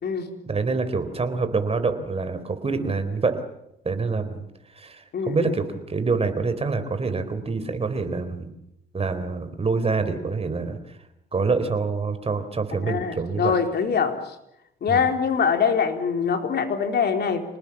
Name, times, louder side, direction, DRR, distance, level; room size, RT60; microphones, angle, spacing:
voice 1, 0.5-3.4 3.8-4.4 4.8-8.5 8.9-10.8 11.3-13.5 14.9-15.0, right 4 dB, 30° right, 9 dB, 4.0 m, -26 dB
voice 2, 5.1-5.5 12.8-14.2 14.8-17.4, left 6 dB, 55° left, 5 dB, 3.9 m, -23 dB
27.0 x 19.5 x 7.4 m, 0.82 s
cardioid pair, 90°, 20 cm